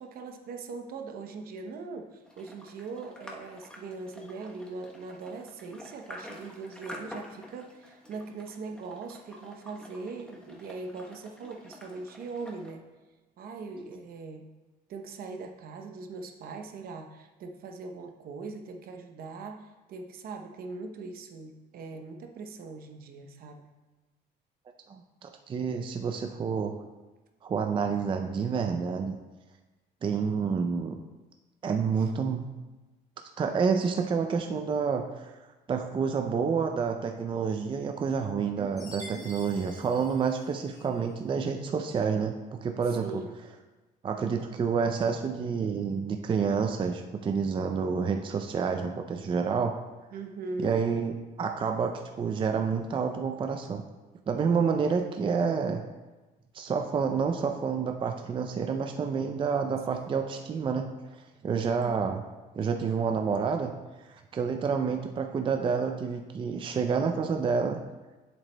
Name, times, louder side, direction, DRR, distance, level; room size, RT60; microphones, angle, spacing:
voice 1, 0.0-12.8 13.4-14.5 14.9-23.6 32.0-32.1 38.5-39.3 42.9-43.4 50.1-50.8 60.0-60.1 61.8-62.2, right 4 dB, 60° right, 4 dB, 0.8 m, -41 dB
sound 1, 2.3-12.7, left 1 dB, 5° left, 1.0 m, -48 dB
voice 2, 25.2-26.8 27.4-29.1 30.0-31.0 31.6-32.5 33.4-35.3 35.7-43.1 44.0-49.7 50.6-51.9 52.2-53.8 54.3-55.8 56.5-60.9 61.1-62.2 62.5-63.7 64.1-67.8, right 5 dB, 30° right, 5 dB, 0.4 m, -29 dB
Chime, 38.8-41.1, equal, 20° left, 1.3 m, -48 dB
7.9 x 7.4 x 2.2 m, 1.2 s
cardioid pair, 110°, 17 cm